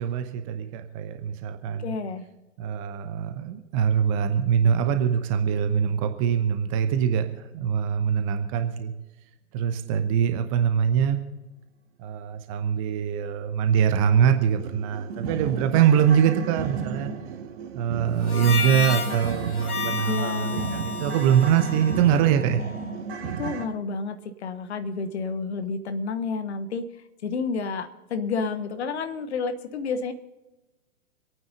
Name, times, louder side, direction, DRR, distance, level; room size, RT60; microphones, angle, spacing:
voice 1, 0.0-1.9 2.6-8.9 9.5-11.2 12.0-17.1 17.7-22.6, right 8 dB, 20° right, 7 dB, 0.9 m, -23 dB
voice 2, 1.8-2.2 20.1-20.8 23.2-26.9 27.2-30.1, left 4 dB, 45° left, 11 dB, 1.3 m, -30 dB
sound 1, 13.7-13.8 14.2-14.3 14.6-23.7, right 6 dB, 40° right, 1.8 m, -34 dB
Harmonica, 18.2-22.8, left 5 dB, 70° left, 2.2 m, -32 dB
26.5 x 9.2 x 3.9 m, 1.1 s
figure-of-eight pair, 120°, 46 cm